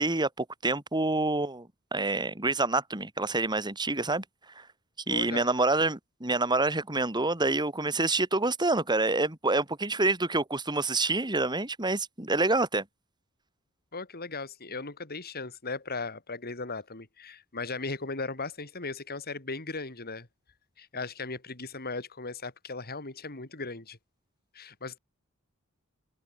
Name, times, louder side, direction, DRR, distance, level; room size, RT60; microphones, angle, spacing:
voice 1, 0.0-4.2 4.6-4.7 5.1-12.8, right 2 dB, 20° right, 2.8 m, -27 dB
voice 2, 5.1-5.5 13.9-20.3 20.8-24.0 24.5-25.0, left 3 dB, 45° left, 3.4 m, -37 dB
head